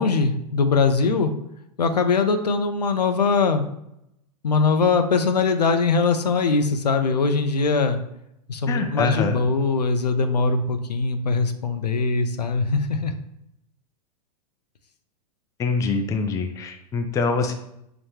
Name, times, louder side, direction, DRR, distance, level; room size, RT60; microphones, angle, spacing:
voice 1, 0.0-1.3 1.8-3.6 4.4-8.0 8.5-13.1, left 4 dB, 85° left, 7 dB, 0.5 m, -21 dB
voice 2, 8.7-9.4 15.6-17.5, left 4 dB, 15° left, 5 dB, 0.4 m, -24 dB
5.8 x 2.1 x 2.9 m, 0.79 s
figure-of-eight pair, 95°, 20 cm